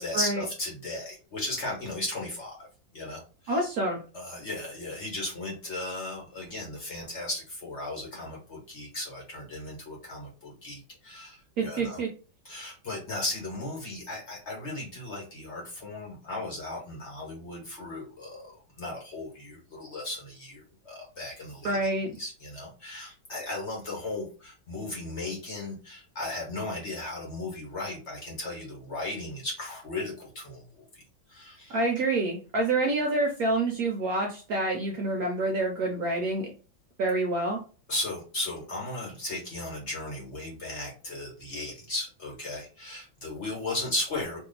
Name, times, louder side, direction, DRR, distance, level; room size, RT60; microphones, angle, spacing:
voice 1, 0.0-2.7 2.9-3.6 4.1-12.0 12.4-21.9 22.2-31.0 31.3-31.8 37.9-44.4, left 2 dB, 40° left, -2 dB, 1.3 m, -36 dB
voice 2, 3.5-4.0 11.6-12.1 21.6-22.2 31.7-36.5 37.0-37.6, right 2 dB, 65° right, 2 dB, 0.9 m, -27 dB
3.0 x 2.7 x 4.0 m, 0.36 s
omnidirectional pair, 2.1 m